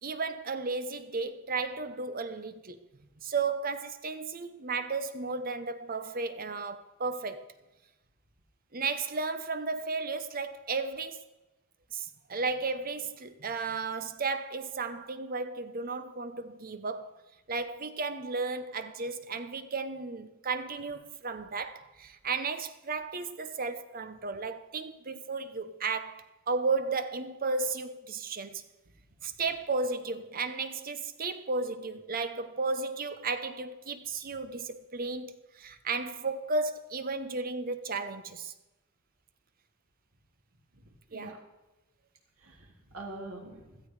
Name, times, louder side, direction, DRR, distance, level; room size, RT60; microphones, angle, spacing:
voice 1, 0.0-2.8 3.2-7.5 8.7-11.2 11.9-17.2 17.5-28.6 29.2-38.5 41.1-41.3, right 4 dB, 45° right, 0.9 m, -34 dB
voice 2, 40.7-41.4 42.4-43.8, right 2 dB, 90° right, 3.7 m, -45 dB
16.0 x 13.0 x 4.9 m
head